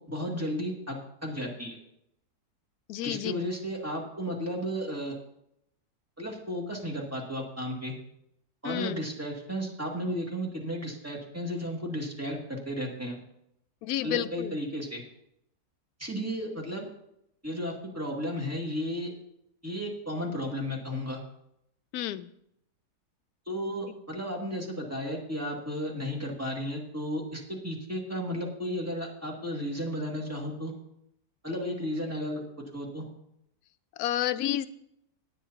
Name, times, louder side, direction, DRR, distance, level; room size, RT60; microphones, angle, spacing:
voice 1, 0.1-1.8 3.0-5.1 6.2-7.9 8.6-13.2 14.0-15.0 16.0-16.9 17.4-19.1 19.6-21.2 23.5-30.7 31.4-32.4 32.7-33.0, equal, 10° right, -1 dB, 2.1 m, -34 dB
voice 2, 2.9-3.4 8.6-9.1 13.8-14.6 21.9-22.3 34.0-34.7, left 12 dB, 80° left, 14 dB, 1.1 m, -30 dB
18.0 x 9.3 x 2.8 m, 0.77 s
omnidirectional pair, 1.6 m